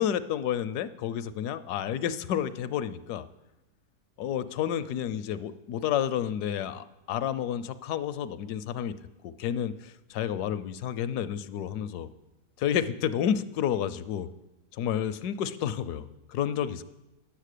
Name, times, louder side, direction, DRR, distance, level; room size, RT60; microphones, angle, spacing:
voice 1, 0.0-3.3 4.2-8.9 9.2-12.1 12.6-14.3 14.8-16.8, left 9 dB, 75° left, 14 dB, 1.1 m, -30 dB
10.5 x 8.2 x 6.6 m, 0.99 s
omnidirectional pair, 1.8 m